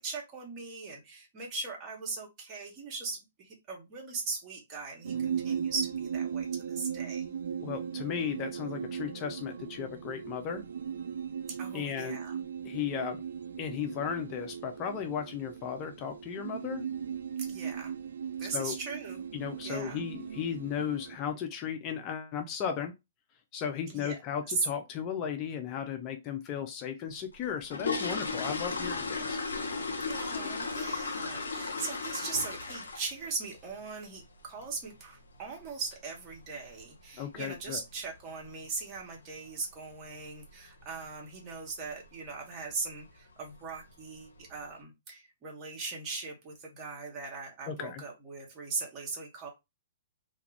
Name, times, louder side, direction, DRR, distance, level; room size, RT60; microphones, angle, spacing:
voice 1, 0.0-7.3 11.6-12.4 17.4-17.9 18.4-19.3 19.6-20.1 23.9-24.2 24.5-24.6 30.1-49.5, right 4 dB, 30° right, 1.1 m, -39 dB
sound 1, 5.0-21.2, right 8 dB, 75° right, 0.3 m, -38 dB
voice 2, 7.6-10.6 11.7-12.2 12.6-13.2 13.6-16.9 18.5-18.8 19.3-22.9 23.5-29.4 37.2-37.8 47.7-48.0, left 8 dB, 30° left, 0.5 m, -35 dB
sound 2, 27.3-33.2 33.5-33.8 34.2-34.3 34.6-34.8 35.1-35.4 35.6-35.7 36.3-36.4 36.7-36.8 37.3-37.6 37.9-38.0 38.4-38.6 38.9-39.0 39.5-39.6 40.2-40.5 40.8-41.1 41.5-41.6 42.0-42.1 42.9-43.0 43.4-43.9 44.4-44.5, left 4 dB, 80° left, 0.6 m, -35 dB
2.4 x 2.3 x 3.2 m
hypercardioid pair, 125°, 0 cm